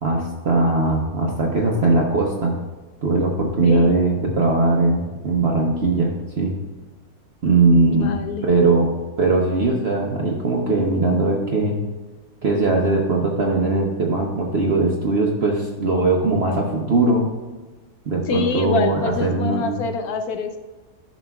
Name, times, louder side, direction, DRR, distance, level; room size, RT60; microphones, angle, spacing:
voice 1, 0.0-2.6 3.0-6.5 7.4-8.2 8.4-8.9 9.2-11.8 12.4-17.3 18.1-19.8, right 3 dB, 50° right, -1 dB, 0.9 m, -20 dB
voice 2, 3.6-4.0 7.9-8.5 18.3-20.6, left 4 dB, 80° left, 6 dB, 1.2 m, -25 dB
11.0 x 6.0 x 2.3 m, 1.3 s
omnidirectional pair, 1.6 m